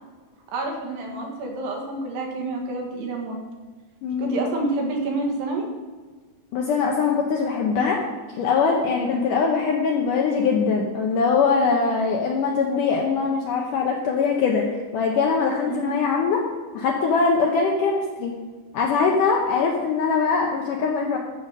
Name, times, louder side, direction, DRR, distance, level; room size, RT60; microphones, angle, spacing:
voice 1, 0.5-3.4 4.2-5.7 15.7-15.9, right 2 dB, 75° right, 1 dB, 3.9 m, -28 dB
voice 2, 4.0-4.4 6.5-8.0 8.4-14.6 14.9-16.4 16.7-18.3 18.7-21.2, left 5 dB, 75° left, 0 dB, 2.0 m, -22 dB
13.0 x 5.8 x 6.5 m, 1.4 s
omnidirectional pair, 4.8 m